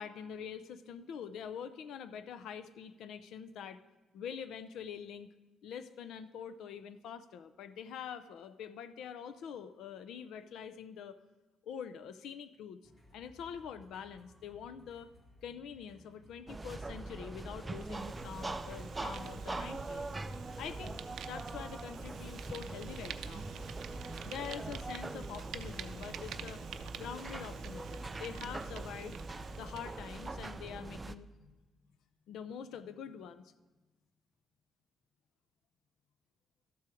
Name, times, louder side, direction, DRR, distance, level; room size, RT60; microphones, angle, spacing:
voice 1, 0.0-3.8 4.1-5.3 5.6-11.2 11.6-12.8 13.1-15.1 15.4-20.1 20.6-21.0 21.3-23.5 24.2-26.6 26.9-29.2 29.6-31.6 32.3-33.5, left 7 dB, 75° left, 12 dB, 0.5 m, -45 dB
sound 1, 12.8-19.2, equal, 25° left, 1.7 m, -61 dB
sound 2, 16.5-31.2, right 2 dB, 15° right, 0.4 m, -42 dB
Fire, 17.4-30.8, right 9 dB, 75° right, 0.5 m, -49 dB
12.5 x 7.6 x 4.9 m, 1.2 s
cardioid pair, 160°, 0 cm